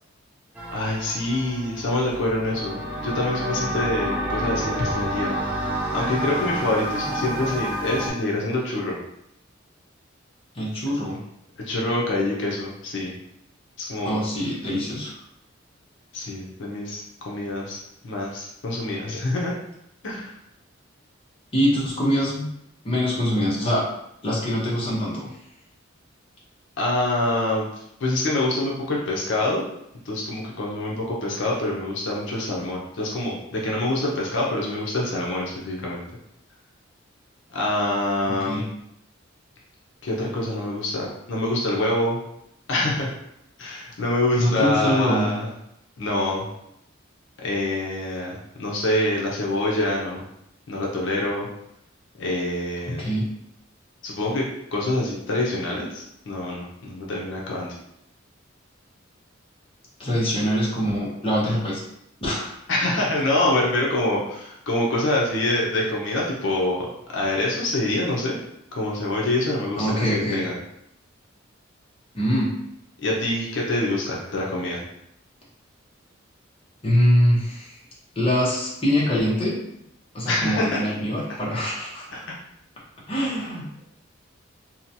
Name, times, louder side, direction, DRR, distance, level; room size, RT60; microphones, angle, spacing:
sound 1, 0.6-8.1, equal, 10° right, 0.4 m, -29 dB
voice 1, 0.7-5.3 5.9-9.0 11.7-13.1 13.8-14.2 16.1-17.8 18.0-19.5 20.0-20.3 26.8-27.7 28.0-29.6 30.1-36.0 37.5-38.7 40.0-42.2 42.7-43.1 43.6-45.5 46.0-46.5 47.4-50.2 50.7-51.5 52.2-53.1 54.0-54.4 54.7-57.8 62.7-68.4 68.8-70.6 73.0-74.8 80.3-80.9 82.1-82.2, left 1 dB, 65° left, -3 dB, 0.6 m, -25 dB
voice 2, 10.5-11.2 14.0-15.2 21.5-22.5 22.8-23.9 24.2-25.3 38.3-38.6 44.4-45.3 52.9-53.3 60.0-61.8 62.2-62.5 69.8-70.4 72.1-72.5 76.8-77.8 78.2-79.6 80.1-82.1 83.1-83.8, equal, 30° left, -5 dB, 0.8 m, -23 dB
2.8 x 2.2 x 2.7 m, 0.77 s
head